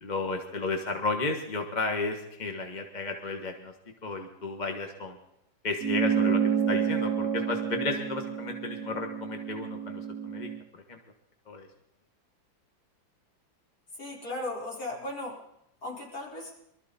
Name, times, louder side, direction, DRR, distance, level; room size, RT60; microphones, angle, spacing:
voice 1, 0.0-3.7 4.0-5.2 5.6-11.0 11.5-11.7, left 3 dB, 25° left, 4 dB, 1.2 m, -33 dB
sound 1, 5.8-10.6, right 7 dB, 50° right, 1.1 m, -29 dB
voice 2, 13.9-15.4 15.8-16.6, left 2 dB, 50° left, -5 dB, 5.2 m, -36 dB
23.0 x 13.5 x 4.2 m, 0.83 s
omnidirectional pair, 2.1 m